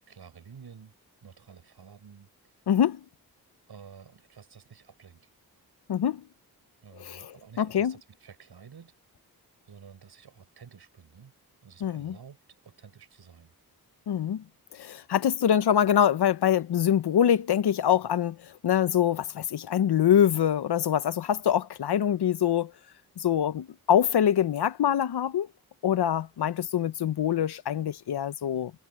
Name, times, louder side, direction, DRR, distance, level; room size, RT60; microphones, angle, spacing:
voice 1, 0.1-0.9 1.2-2.5 3.7-5.3 6.8-8.9 9.7-11.3 11.6-12.4 12.6-13.5, right 6 dB, 80° right, 6.0 m, -51 dB
voice 2, 2.7-3.0 5.9-6.2 7.0-7.3 7.6-7.9 11.8-12.1 14.1-14.4 14.7-22.7 23.2-25.5 25.8-28.7, left 9 dB, 80° left, 0.9 m, -24 dB
cardioid pair, 45°, 38 cm